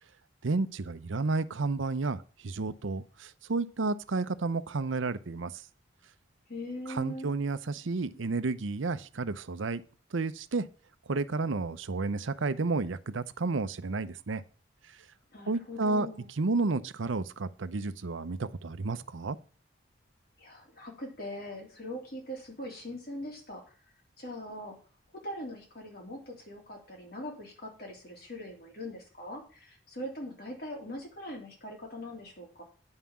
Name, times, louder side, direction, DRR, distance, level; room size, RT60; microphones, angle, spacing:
voice 1, 0.4-5.6 6.9-9.8 10.1-10.7 11.1-14.4 15.5-16.1 16.4-19.4, right 3 dB, 80° right, 0.7 m, -31 dB
voice 2, 6.5-7.3 15.3-16.3 20.4-23.7 24.2-24.8 25.1-32.6, left 1 dB, 50° left, 3.3 m, -41 dB
9.7 x 5.7 x 7.2 m
head